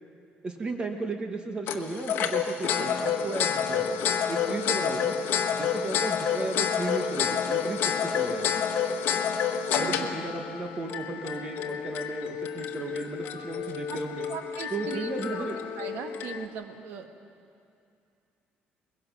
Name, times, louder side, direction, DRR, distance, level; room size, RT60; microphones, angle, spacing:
voice 1, 0.4-4.0 4.3-5.2 5.5-8.6 9.8-14.3 14.7-15.6, right 3 dB, 25° right, 4 dB, 1.3 m, -35 dB
sound 1, 1.7-16.5, left 7 dB, 70° left, 1.3 m, -29 dB
voice 2, 9.7-10.1 14.3-15.5 15.8-17.1, right 7 dB, 75° right, 5 dB, 1.6 m, -38 dB
22.0 x 22.0 x 6.1 m, 2.5 s
cardioid pair, 170°, 4 cm